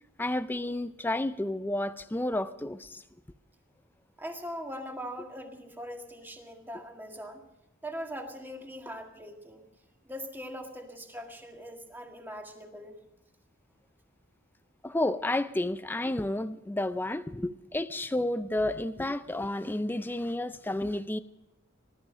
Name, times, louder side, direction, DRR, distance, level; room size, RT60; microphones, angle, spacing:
voice 1, 0.2-3.0 14.8-21.2, left 1 dB, 10° left, 0.4 m, -31 dB
voice 2, 4.2-7.4 7.8-9.7 10.0-13.0, equal, 10° right, 1.8 m, -41 dB
19.0 x 13.0 x 5.1 m
head